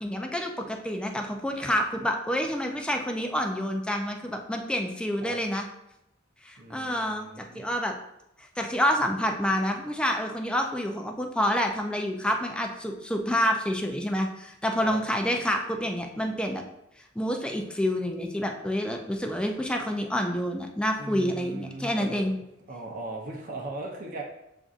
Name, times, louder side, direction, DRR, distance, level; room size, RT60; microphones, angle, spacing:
voice 1, 0.0-5.7 6.4-7.9 8.6-16.6 17.2-22.3, equal, 5° left, 3 dB, 0.4 m, -28 dB
voice 2, 6.6-7.7 14.8-15.0 21.0-22.3 22.7-24.2, right 2 dB, 45° right, -1 dB, 0.7 m, -38 dB
7.3 x 2.6 x 2.4 m, 0.85 s
head